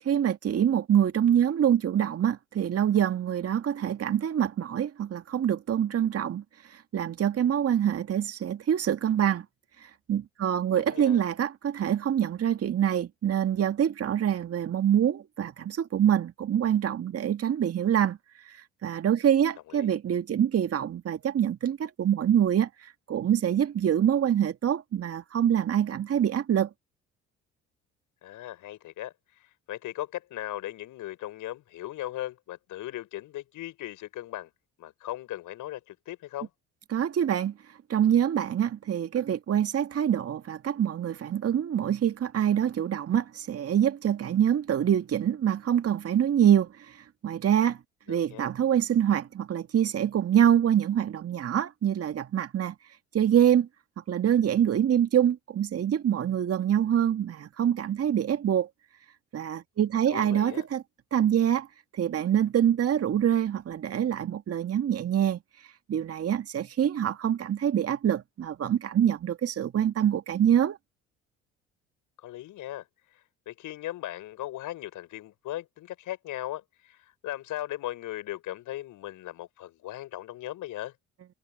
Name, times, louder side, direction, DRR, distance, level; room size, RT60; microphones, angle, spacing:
voice 1, 0.0-6.4 6.7-9.5 9.8-18.2 18.5-26.7 36.9-37.5 37.9-47.8 48.1-52.7 53.1-53.7 54.1-58.7 59.3-60.8 61.1-61.7 61.9-65.4 65.9-70.8, right 9 dB, 40° right, 2.1 m, -25 dB
voice 2, 10.7-11.2 19.7-19.9 28.2-34.5 34.8-36.5 48.1-48.5 60.1-60.7 72.2-72.8 73.5-80.9, left 14 dB, 60° left, 5.9 m, -38 dB
figure-of-eight pair, 55°, 35 cm